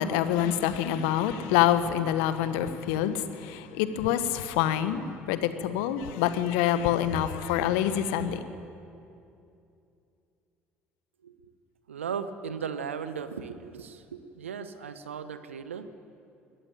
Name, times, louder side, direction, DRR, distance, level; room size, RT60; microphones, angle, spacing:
voice 1, 0.0-8.4, left 10 dB, 70° left, 12 dB, 1.2 m, -26 dB
voice 2, 11.9-15.9, right 6 dB, 85° right, 12 dB, 1.0 m, -37 dB
21.5 x 13.5 x 9.3 m, 2.6 s
hypercardioid pair, 60°, 7 cm